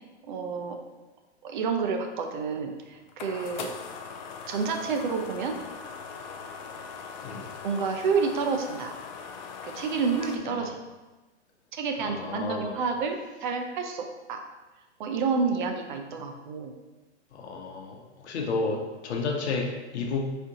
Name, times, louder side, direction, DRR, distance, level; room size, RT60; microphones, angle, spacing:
voice 1, 0.3-0.8 1.4-3.7 4.5-5.6 7.6-8.9 9.6-10.8 11.7-14.0 14.3-14.4 15.0-16.7, right 5 dB, 45° right, 4 dB, 0.5 m, -29 dB
sound 1, 2.4-10.4, left 6 dB, 40° left, 0.4 m, -41 dB
voice 2, 12.0-12.7 17.3-19.7 19.9-20.3, left 3 dB, 70° left, 1 dB, 1.0 m, -31 dB
4.3 x 2.6 x 3.6 m, 1.2 s
hypercardioid pair, 130°, 35 cm